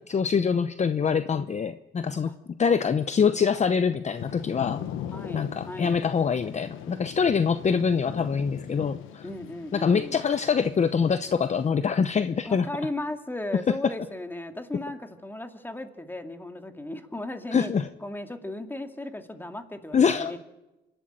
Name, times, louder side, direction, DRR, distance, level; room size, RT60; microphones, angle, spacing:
voice 1, 0.1-2.3 2.6-4.8 5.3-9.3 9.7-12.7 13.7-13.9 17.5-17.9 19.9-20.4, left 6 dB, 35° left, 11 dB, 0.8 m, -24 dB
Thunder / Rain, 4.1-11.7, left 10 dB, 90° left, 1.2 m, -40 dB
voice 2, 5.1-5.9 9.2-10.2 12.4-17.7 18.0-20.4, left 1 dB, 10° left, 6 dB, 2.3 m, -36 dB
26.0 x 11.5 x 8.9 m, 1.0 s
cardioid pair, 90°, 20 cm